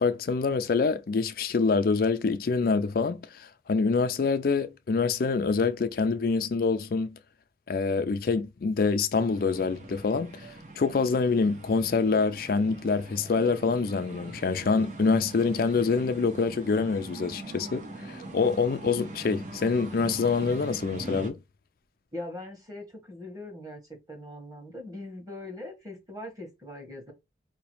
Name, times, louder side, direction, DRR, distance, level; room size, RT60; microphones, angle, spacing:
voice 1, 0.0-7.1 7.7-21.4, left 4 dB, 50° left, 0.4 m, -26 dB
sound 1, 9.1-21.3, right 2 dB, 45° right, 0.8 m, -42 dB
voice 2, 22.1-27.1, left 1 dB, 20° right, 1.4 m, -41 dB
4.6 x 3.0 x 3.1 m
head